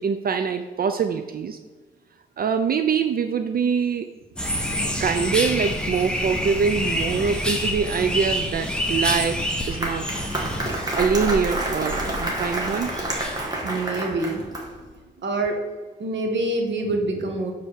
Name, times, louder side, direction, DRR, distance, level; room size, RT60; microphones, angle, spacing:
voice 1, 0.0-1.6 2.4-4.1 5.0-10.1 10.9-12.9, right 6 dB, 50° right, 7 dB, 0.4 m, -24 dB
sound 1, 4.4-13.4, equal, 5° left, 0.9 m, -28 dB
Applause, 9.4-14.9, right 1 dB, 20° right, 1.4 m, -29 dB
voice 2, 13.6-14.5 15.2-15.6 16.0-17.5, right 2 dB, 75° right, 3 dB, 1.3 m, -26 dB
7.7 x 3.5 x 6.3 m, 1.4 s
wide cardioid pair, 170°, 19 cm